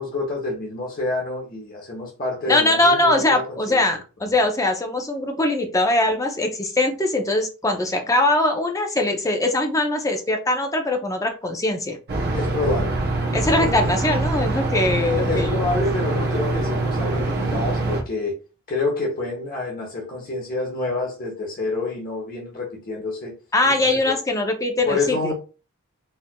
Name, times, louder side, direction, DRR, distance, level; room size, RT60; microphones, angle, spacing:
voice 1, 0.0-3.8 12.3-13.0 13.3-13.8 14.9-18.4 18.7-23.3 23.6-24.1 24.8-25.3, left 3 dB, 40° left, 0.9 m, -28 dB
voice 2, 2.5-12.0 13.3-15.6 23.5-25.3, left 2 dB, 15° left, 0.5 m, -21 dB
sound 1, 12.1-18.0, right 2 dB, 45° right, 0.7 m, -24 dB
4.3 x 2.4 x 2.2 m
head